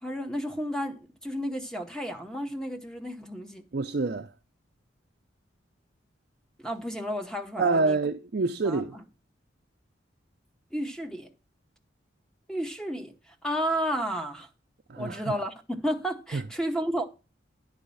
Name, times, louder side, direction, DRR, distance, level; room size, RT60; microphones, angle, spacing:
voice 1, 0.0-3.6 6.6-8.0 8.6-8.9 10.7-11.3 12.5-14.5 15.0-17.1, equal, 5° left, 0.9 m, -32 dB
voice 2, 3.7-4.3 7.6-9.0 14.9-15.4 16.3-16.4, right 3 dB, 55° right, 0.5 m, -27 dB
10.0 x 4.1 x 7.0 m
head